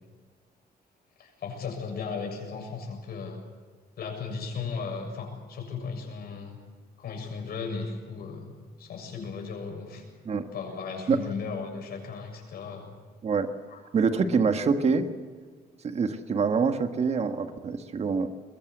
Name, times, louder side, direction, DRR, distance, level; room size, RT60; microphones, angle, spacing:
voice 1, 1.2-3.4 4.0-6.6 7.0-8.5 8.8-10.0 10.5-12.9 13.7-13.8, left 5 dB, 70° left, 2 dB, 7.2 m, -36 dB
voice 2, 13.9-15.1 15.8-18.3, right 5 dB, 40° right, 8 dB, 1.6 m, -25 dB
22.5 x 22.0 x 8.0 m, 1.5 s
cardioid pair, 140°, 17 cm